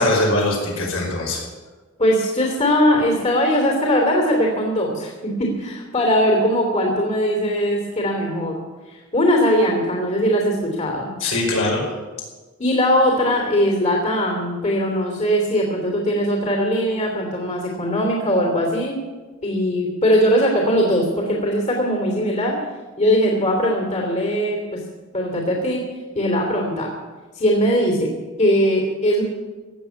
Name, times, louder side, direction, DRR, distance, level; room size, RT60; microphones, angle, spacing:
voice 1, 0.0-1.4 11.2-11.8, left 2 dB, 70° left, -1 dB, 5.1 m, -21 dB
voice 2, 2.0-8.6 8.9-11.1 12.6-19.0 19.4-22.6 23.0-24.8 25.1-25.8 26.1-26.9 27.3-28.1 28.4-29.2, equal, 35° left, 0 dB, 3.0 m, -20 dB
17.0 x 7.4 x 9.5 m, 1.3 s
head